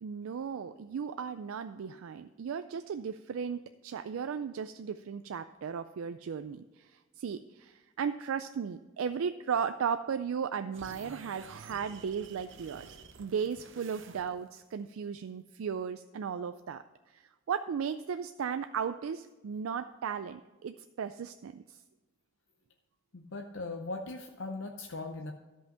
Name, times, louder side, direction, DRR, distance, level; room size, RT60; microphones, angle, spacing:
voice 1, 0.0-21.8, right 7 dB, 85° right, 10 dB, 0.4 m, -36 dB
sound 1, 10.7-14.6, right 5 dB, 65° right, 0.7 m, -51 dB
voice 2, 23.1-25.3, left 2 dB, 65° left, 3 dB, 0.7 m, -39 dB
13.0 x 5.6 x 5.7 m, 1.2 s
head